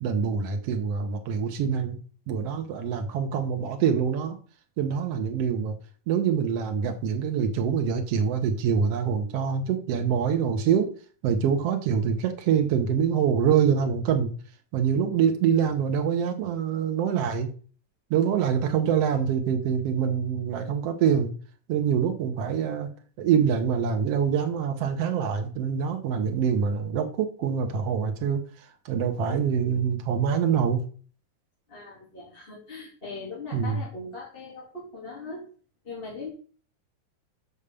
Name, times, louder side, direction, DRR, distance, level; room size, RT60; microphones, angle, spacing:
voice 1, 0.0-2.0 2.3-4.3 4.8-5.7 6.1-10.9 11.2-14.3 14.7-17.5 18.1-21.3 21.7-22.9 23.2-28.4 28.8-30.8 33.5-33.8, right 7 dB, 80° right, 5 dB, 1.3 m, -25 dB
voice 2, 31.7-35.4 35.8-36.3, left 3 dB, 15° left, -5 dB, 2.2 m, -40 dB
7.3 x 4.9 x 6.9 m, 0.41 s
omnidirectional pair, 4.4 m